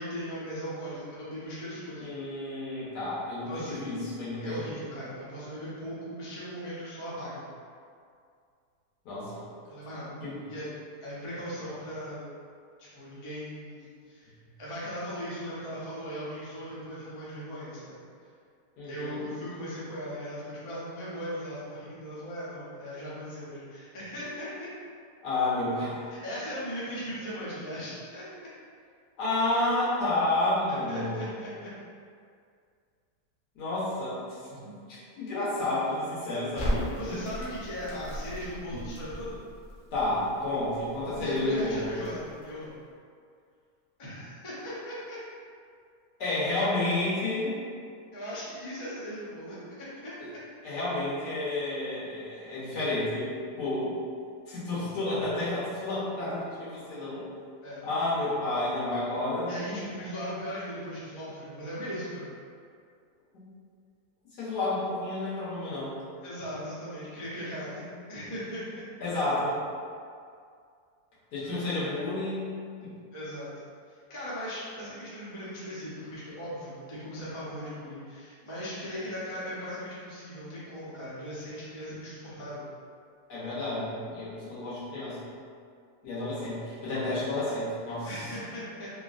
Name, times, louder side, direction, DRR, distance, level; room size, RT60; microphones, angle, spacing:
voice 1, 0.0-2.1 3.5-3.9 4.4-7.4 9.7-10.1 10.5-10.7 11.0-12.2 12.8-14.3 14.6-18.0 18.8-24.7 26.2-28.2 30.9-31.7 36.8-39.4 41.1-42.7 44.0-45.2 48.1-50.2 57.6-57.8 59.4-62.2 66.2-68.8 71.4-72.0 73.1-73.5 73.9-82.7 86.2-86.4 88.0-88.9, equal, 35° left, -9 dB, 0.5 m, -38 dB
voice 2, 2.0-4.6 9.0-9.5 10.2-10.4 18.8-19.2 25.2-25.9 29.2-31.2 33.5-37.2 39.9-42.0 46.2-47.5 50.6-54.0 54.5-57.2 57.8-59.6 63.3-63.4 64.4-66.0 69.0-69.5 71.3-72.5 72.8-72.9 83.3-85.2 86.0-88.3, left 2 dB, 85° left, -10 dB, 1.6 m, -30 dB
Crackle, 36.6-42.7, equal, 55° left, 0.9 m, -37 dB
3.6 x 2.3 x 2.5 m, 2.2 s
omnidirectional pair, 1.7 m